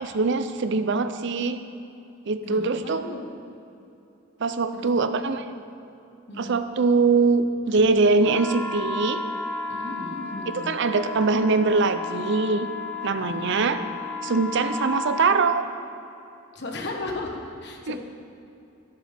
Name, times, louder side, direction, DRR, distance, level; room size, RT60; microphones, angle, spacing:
voice 1, 0.0-1.6 2.3-3.0 4.4-5.4 6.4-9.2 10.5-12.7 13.0-13.8 14.2-15.7 17.9-18.0, right 4 dB, 60° right, 10 dB, 0.5 m, -22 dB
voice 2, 2.4-3.2 4.7-5.2 6.3-6.6 9.7-10.7 13.2-13.8 16.5-18.0, left 2 dB, 55° left, 1 dB, 1.4 m, -36 dB
sound 1, 8.2-15.4, left 3 dB, 5° left, 0.8 m, -33 dB
14.0 x 11.5 x 3.5 m, 2.7 s
head